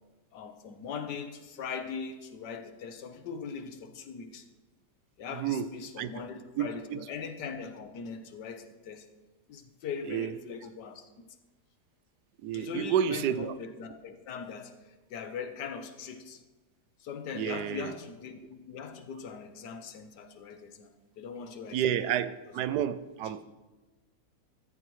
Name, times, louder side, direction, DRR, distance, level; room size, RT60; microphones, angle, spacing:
voice 1, 0.3-4.4 5.2-9.0 9.5-11.3 12.5-14.8 15.1-16.4 17.0-20.9 21.2-22.0 22.7-22.8, left 6 dB, 85° left, 8 dB, 1.6 m, -40 dB
voice 2, 5.3-5.7 6.0-6.3 6.6-7.0 10.1-10.3 10.6-10.7 12.4-13.5 17.3-18.0 21.7-23.5, right 9 dB, 80° right, 13 dB, 1.1 m, -30 dB
14.0 x 13.5 x 3.1 m, 1.2 s
omnidirectional pair, 1.8 m